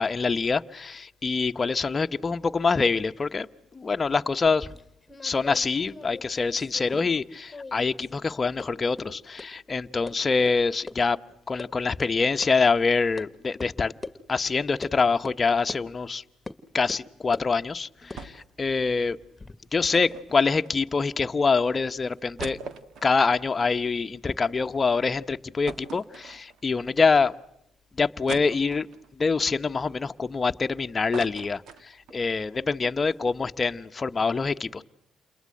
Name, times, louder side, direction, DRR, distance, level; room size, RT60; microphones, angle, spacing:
voice 1, 0.0-4.7 5.2-11.2 11.5-13.9 14.3-16.2 16.7-19.2 19.7-22.6 23.0-27.3 28.0-28.9 29.2-34.8, left 4 dB, 30° left, 1.0 m, -25 dB
sound 1, 4.4-7.2 7.5-8.2 8.6-8.7 9.0-9.1 9.4-9.5 10.1-10.2 10.5-10.6 10.9-11.0 11.3-11.7 12.0-12.1 12.4-12.5 13.2-13.3 13.6-13.7 14.0-14.2 14.8-15.0 15.2-15.4 15.7-15.8 16.5-16.6 16.9-17.5 18.0-19.5, left 3 dB, 15° left, 2.0 m, -41 dB
sound 2, 18.2-18.6 18.9-19.0 19.9-21.2 21.7-21.8 22.1-24.6 25.0-25.1 25.7-26.8 27.3-27.4 28.3-29.1 29.7-30.6 30.9-32.2 32.6-32.7 32.9-33.2, right 5 dB, 75° right, 1.8 m, -42 dB
29.0 x 22.0 x 7.8 m
cardioid pair, 90°, 0 cm